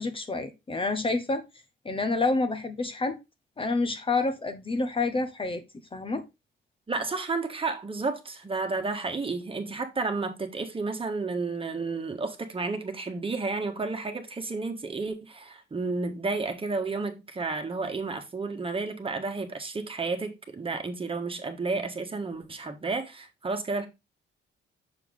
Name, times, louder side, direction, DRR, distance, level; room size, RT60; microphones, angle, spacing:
voice 1, 0.0-1.4 1.8-3.2 3.6-5.6 5.9-6.2, left 3 dB, 25° left, 1.0 m, -28 dB
voice 2, 6.9-23.9, right 3 dB, 25° right, 1.4 m, -31 dB
6.7 x 4.7 x 3.6 m
cardioid pair, 90°, 20 cm